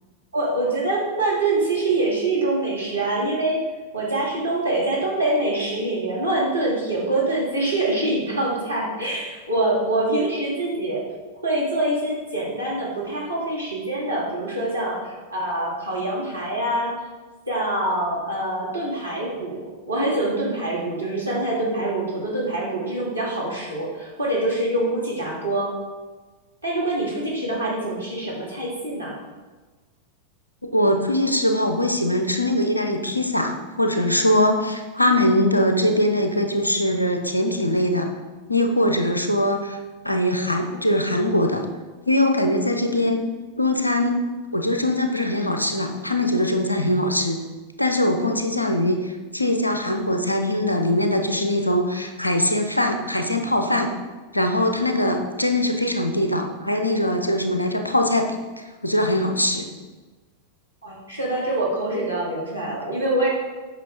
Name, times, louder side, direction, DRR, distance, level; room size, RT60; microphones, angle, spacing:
voice 1, 0.3-3.6 3.9-11.0 11.4-16.9 17.5-25.7 26.6-29.2 60.8-63.3, right 2 dB, 80° right, -5 dB, 2.3 m, -25 dB
voice 2, 30.7-38.1 38.5-39.8 40.0-41.6 42.1-43.2 43.6-44.2 44.5-47.4 47.8-53.9 54.3-59.7, left 1 dB, 85° left, 5 dB, 0.8 m, -22 dB
8.4 x 5.9 x 3.6 m, 1.3 s
figure-of-eight pair, 90°, 0 cm